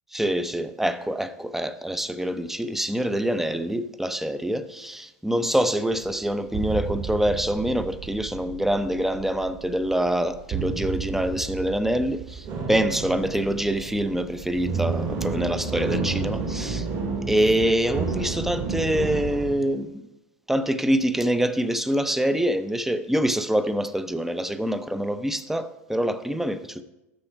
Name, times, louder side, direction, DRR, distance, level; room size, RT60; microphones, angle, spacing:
voice 1, 0.1-16.9 17.3-20.0 20.5-26.8, right 1 dB, 5° right, 0.6 m, -25 dB
sound 1, 6.0-19.5, right 5 dB, 50° right, 3.1 m, -31 dB
11.5 x 6.9 x 4.6 m
hypercardioid pair, 100°, 8 cm